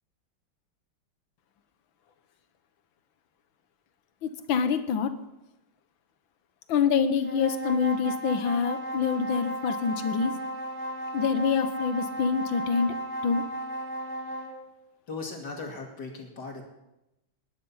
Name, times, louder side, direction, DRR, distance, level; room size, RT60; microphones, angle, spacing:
voice 1, 4.2-5.1 6.7-10.3 11.1-12.9 13.2-13.4, left 6 dB, 75° left, 10 dB, 1.8 m, -26 dB
sound 1, 7.2-14.6, equal, 35° right, 2.3 m, -35 dB
voice 2, 15.1-16.6, left 3 dB, 60° left, 2 dB, 2.9 m, -38 dB
19.5 x 10.0 x 5.6 m, 0.93 s
omnidirectional pair, 2.2 m